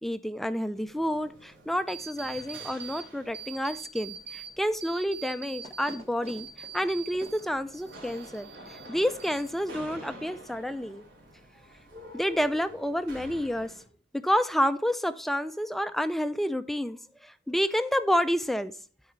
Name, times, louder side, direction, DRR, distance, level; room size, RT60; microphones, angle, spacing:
voice 1, 0.0-11.0 12.1-13.7 14.1-18.7, equal, ahead, 11 dB, 0.3 m, -29 dB
sound 1, 0.7-13.8, equal, 75° right, 3.4 m, -49 dB
sound 2, 1.9-3.0 3.3-4.5 4.8-7.4 7.7-8.9 9.2-9.8, right 6 dB, 35° right, 1.2 m, -43 dB
13.0 x 4.8 x 3.2 m, 0.42 s
head